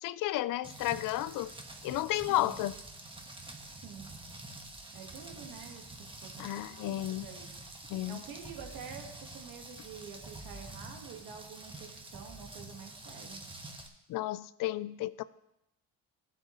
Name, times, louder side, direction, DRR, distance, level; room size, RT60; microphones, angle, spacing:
voice 1, 0.0-1.5 1.8-2.7 6.4-7.3 7.9-8.2 14.1-15.2, left 15 dB, 70° left, 17 dB, 0.5 m, -32 dB
Rain, 0.6-13.9, right 2 dB, 15° right, 1.3 m, -47 dB
voice 2, 3.8-4.1 4.9-7.5 8.1-13.5, right 7 dB, 90° right, 3 dB, 1.6 m, -48 dB
14.5 x 7.8 x 3.1 m, 0.85 s
cardioid pair, 100°, 34 cm